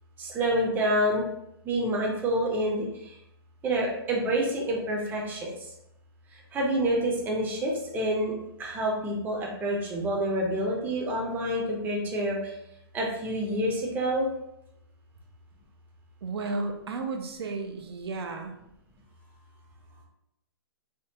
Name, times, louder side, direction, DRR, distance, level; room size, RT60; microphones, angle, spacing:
voice 1, 0.2-1.2 1.6-3.1 3.6-5.5 6.5-8.3 8.6-12.5 12.9-14.3, right 1 dB, 15° right, -1 dB, 0.6 m, -27 dB
voice 2, 16.2-18.5, right 3 dB, 80° right, 4 dB, 0.6 m, -33 dB
3.5 x 2.2 x 2.8 m, 0.82 s
hypercardioid pair, 140°, 13 cm